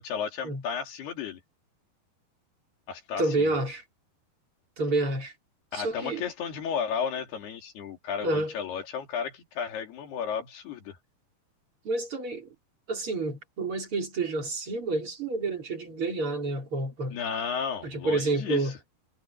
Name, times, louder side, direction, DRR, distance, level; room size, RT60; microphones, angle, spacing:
voice 1, 0.0-1.4 2.9-3.5 5.7-11.0 17.1-18.7, left 7 dB, 70° left, 4.9 m, -33 dB
voice 2, 3.2-3.8 4.8-5.3 5.7-6.2 8.2-8.5 11.8-12.5 12.9-17.2 17.8-18.8, right 2 dB, 35° right, 4.2 m, -29 dB
omnidirectional pair, 4.9 m